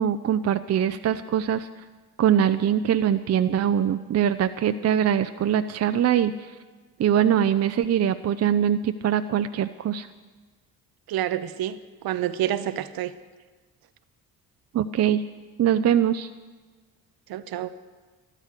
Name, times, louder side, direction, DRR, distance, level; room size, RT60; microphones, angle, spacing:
voice 1, 0.0-1.7 2.2-6.3 7.0-10.1 14.7-15.2 15.6-16.3, right 9 dB, 35° right, 10 dB, 0.6 m, -22 dB
voice 2, 11.1-13.1 17.3-17.7, right 12 dB, 55° right, 13 dB, 0.9 m, -28 dB
13.0 x 12.5 x 6.6 m, 1.4 s
hypercardioid pair, 45°, 43 cm